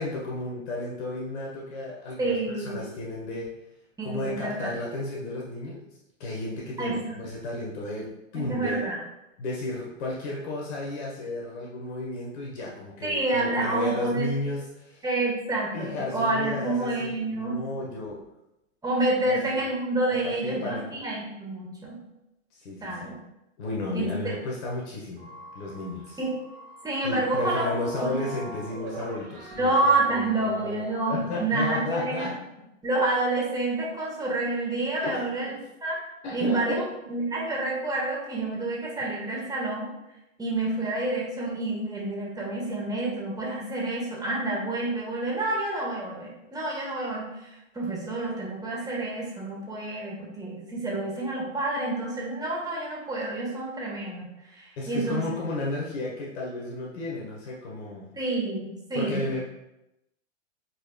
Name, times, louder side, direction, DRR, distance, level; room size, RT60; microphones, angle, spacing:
voice 1, 0.0-3.5 4.0-5.8 6.2-8.8 9.4-15.0 15.7-18.2 19.2-19.7 20.0-20.8 22.6-23.1 23.6-25.3 25.5-26.2 27.0-29.7 30.5-30.8 31.1-32.3 35.0-35.6 36.2-36.8 54.8-58.1 58.9-59.4, left 2 dB, 55° left, -3 dB, 1.6 m, -33 dB
voice 2, 2.2-2.9 4.0-4.7 6.8-7.2 8.3-9.0 13.0-14.2 15.0-17.6 18.8-22.0 22.8-23.1 23.9-24.3 26.2-26.3 26.8-28.1 29.6-32.3 32.8-35.5 35.8-36.0 36.3-36.8 37.1-39.9 40.4-55.3 58.1-59.4, right 2 dB, 10° right, -4 dB, 1.9 m, -28 dB
sound 1, 25.2-31.2, right 2 dB, 40° right, 1.7 m, -42 dB
8.6 x 4.6 x 2.4 m, 0.88 s
hypercardioid pair, 110°, 39 cm